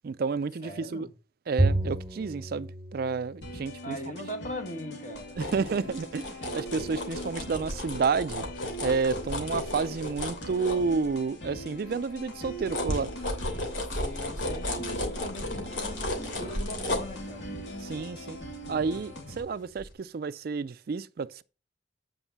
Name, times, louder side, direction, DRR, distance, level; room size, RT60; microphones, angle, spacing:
voice 1, 0.0-1.1 1.5-4.0 5.4-8.5 8.8-13.1 17.8-18.4 18.7-21.4, right 5 dB, 55° right, 0.4 m, -30 dB
voice 2, 0.6-1.1 3.8-5.8 13.9-17.5, left 1 dB, 40° left, 1.6 m, -40 dB
Bowed string instrument, 1.6-4.1, right 2 dB, 10° right, 0.8 m, -30 dB
sound 1, 3.4-19.4, equal, 70° left, 2.9 m, -42 dB
sound 2, 5.2-11.4 11.9-19.4 19.8-19.9, left 1 dB, 85° left, 3.0 m, -35 dB
9.0 x 5.4 x 5.4 m
head